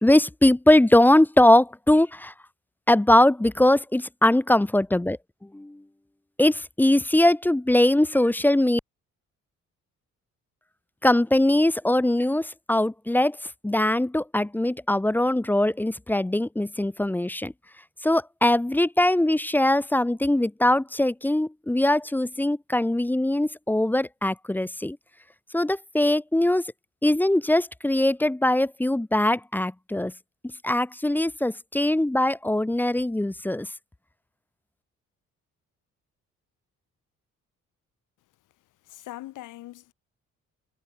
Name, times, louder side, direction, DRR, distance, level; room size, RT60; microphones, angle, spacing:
voice 1, 0.0-2.3 2.9-5.2 5.5-5.8 6.4-8.8 11.0-13.4 13.6-17.5 18.0-25.0 25.5-26.6 27.0-30.1 30.6-33.7, left 1 dB, 5° left, 0.5 m, -21 dB
voice 2, 38.9-39.9, left 16 dB, 90° left, 2.3 m, -41 dB
cardioid pair, 90°, 30 cm